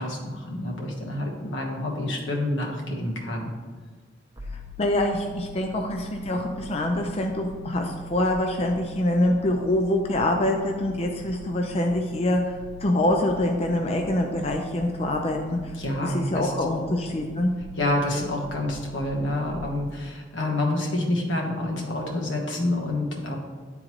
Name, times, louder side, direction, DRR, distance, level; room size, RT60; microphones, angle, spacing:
voice 1, 0.0-3.5 15.8-16.5 16.8-16.9 17.8-23.4, left 1 dB, 85° left, 0 dB, 1.2 m, -28 dB
sound 1, 4.4-20.1, right 3 dB, 20° right, 0.8 m, -43 dB
voice 2, 4.8-12.6 12.8-15.7 16.0-17.5, left 1 dB, 35° left, 3 dB, 0.4 m, -25 dB
10.0 x 3.8 x 3.1 m, 1.5 s
head